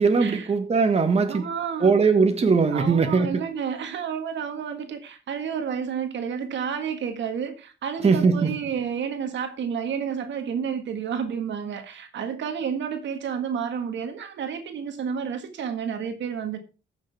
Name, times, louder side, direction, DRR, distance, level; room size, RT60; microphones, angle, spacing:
voice 1, 0.0-1.4 1.8-3.4 8.0-8.5, right 4 dB, 30° right, 1.6 m, -20 dB
voice 2, 1.3-1.9 2.7-16.6, right 7 dB, 65° right, 1.7 m, -30 dB
14.5 x 6.7 x 3.5 m
cardioid pair, 90°, 20 cm